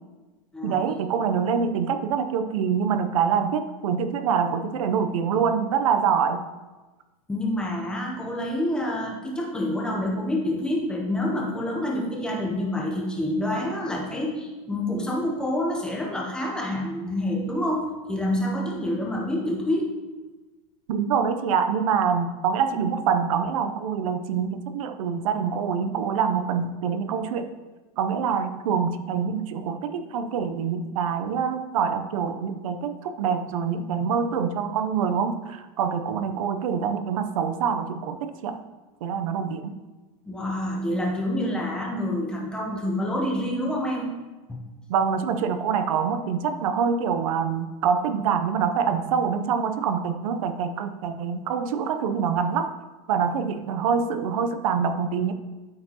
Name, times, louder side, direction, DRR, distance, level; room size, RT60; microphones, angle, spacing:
voice 1, 0.6-6.4 20.9-27.5 28.0-38.6 39.0-39.8 44.9-52.8 53.1-55.3, right 6 dB, 70° right, 9 dB, 0.6 m, -25 dB
voice 2, 7.3-19.9 40.3-44.1 44.5-44.6, left 1 dB, 5° left, -1 dB, 0.6 m, -27 dB
12.5 x 4.4 x 2.9 m, 1.2 s
supercardioid pair, 175°, 18 cm